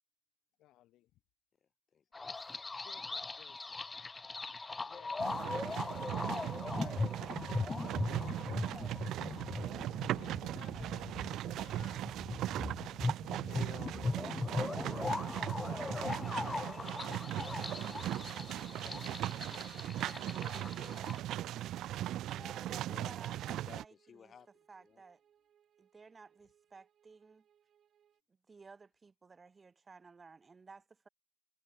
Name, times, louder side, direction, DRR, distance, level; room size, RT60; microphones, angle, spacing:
voice 1, 0.6-1.2 2.3-3.9 4.9-5.3 5.7-7.3 8.0-8.8 10.1-12.0 13.2-13.7 15.0-15.5 18.9-19.0 22.9-23.2, left 15 dB, 90° left, 4.1 m, -60 dB
voice 2, 1.9-2.3 4.8-4.9 9.6-10.5 12.8-13.1 13.4-15.0 15.4-16.1 16.5-18.2 18.5-21.9 22.3-24.5 24.8-25.0, left 7 dB, 50° left, 2.4 m, -58 dB
sound 1, 2.1-21.2, left 3 dB, 25° left, 0.5 m, -39 dB
sound 2, 5.2-23.8, right 13 dB, 85° right, 0.6 m, -39 dB
sound 3, 11.7-28.2, right 9 dB, 65° right, 6.2 m, -72 dB
voice 3, 22.2-24.3 24.7-25.2 25.8-27.4 28.5-31.1, right 4 dB, 35° right, 1.0 m, -56 dB
cardioid pair, 90°, 0 cm